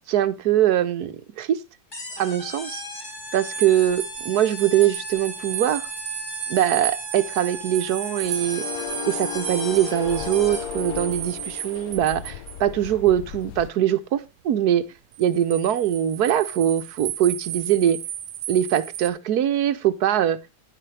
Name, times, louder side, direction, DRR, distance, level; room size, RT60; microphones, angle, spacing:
voice 1, 0.1-1.6 2.2-2.8 3.3-5.8 6.5-8.6 9.0-14.8 15.2-18.0 18.5-20.4, right 11 dB, 65° right, 1.2 m, -22 dB
sound 1, 1.9-10.8, left 2 dB, 25° left, 2.4 m, -37 dB
sound 2, 3.3-12.6 15.1-19.1, right 11 dB, 90° right, 1.4 m, -34 dB
sound 3, 8.2-13.7, left 10 dB, 65° left, 1.0 m, -35 dB
10.0 x 9.7 x 3.2 m
omnidirectional pair, 1.9 m